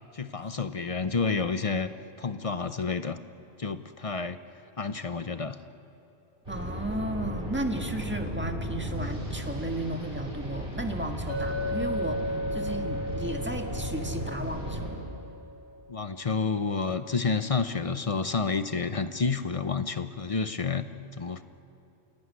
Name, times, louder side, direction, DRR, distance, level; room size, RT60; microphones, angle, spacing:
voice 1, 0.1-1.9 2.2-3.2 3.6-4.4 4.8-5.6 15.9-20.9 21.1-21.4, left 4 dB, 35° left, 11 dB, 0.7 m, -29 dB
sound 1, 6.4-14.9, equal, 50° right, 7.3 m, -35 dB
voice 2, 6.5-15.0, right 1 dB, 10° right, 3 dB, 1.6 m, -34 dB
Chink clink, 11.3-15.7, left 1 dB, 55° left, 6.5 m, -35 dB
27.5 x 17.5 x 9.6 m, 2.8 s
omnidirectional pair, 1.2 m